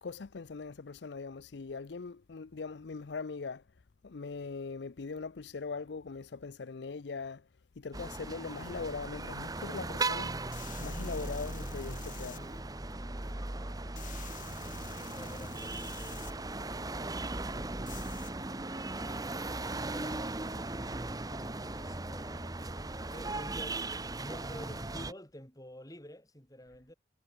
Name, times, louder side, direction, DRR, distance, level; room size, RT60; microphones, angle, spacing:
voice 1, 0.0-3.6 4.0-7.5 7.8-10.3 10.8-12.5, left 4 dB, 75° left, 0.6 m, -41 dB
sound 1, 7.9-25.1, right 2 dB, 20° right, 1.3 m, -38 dB
sound 2, 10.5-12.6 13.9-17.2 17.9-18.3, left 6 dB, 45° left, 1.2 m, -49 dB
voice 2, 13.1-13.8 14.4-18.3 18.6-26.9, equal, 20° left, 7.9 m, -51 dB
head